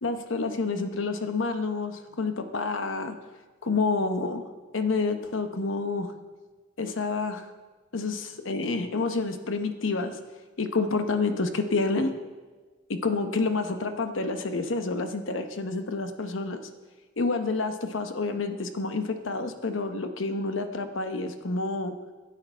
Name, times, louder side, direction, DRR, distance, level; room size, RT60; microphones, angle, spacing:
voice 1, 0.0-3.1 3.6-4.5 4.7-6.1 6.8-7.5 7.9-10.2 10.6-12.1 12.9-16.6 17.2-22.0, left 3 dB, 90° left, 8 dB, 0.9 m, -28 dB
12.5 x 8.5 x 4.5 m, 1.3 s
head